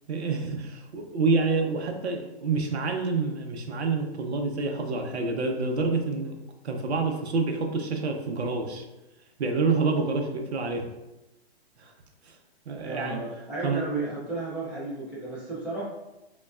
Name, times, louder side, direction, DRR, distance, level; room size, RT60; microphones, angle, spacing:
voice 1, 0.1-6.3 6.6-8.8 9.4-10.8 11.8-11.9 12.3-12.4 12.7-13.2 13.6-13.9, right 4 dB, 75° right, 3 dB, 0.7 m, -27 dB
voice 2, 12.8-15.8, right 2 dB, 5° right, -8 dB, 0.3 m, -33 dB
5.2 x 2.3 x 2.4 m, 0.99 s
hypercardioid pair, 130°, 33 cm